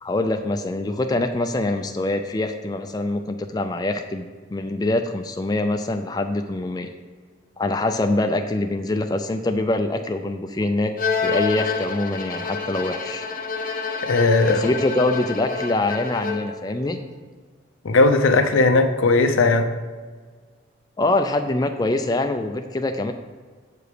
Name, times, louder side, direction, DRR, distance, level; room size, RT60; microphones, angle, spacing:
voice 1, 0.0-6.9 7.6-13.3 14.5-17.0 21.0-23.1, left 2 dB, 20° left, 6 dB, 0.3 m, -24 dB
Bowed string instrument, 11.0-16.7, left 5 dB, 45° left, 0.7 m, -28 dB
voice 2, 14.0-14.7 17.8-19.7, left 3 dB, 85° left, 7 dB, 0.6 m, -17 dB
7.7 x 4.9 x 5.0 m, 1.5 s
head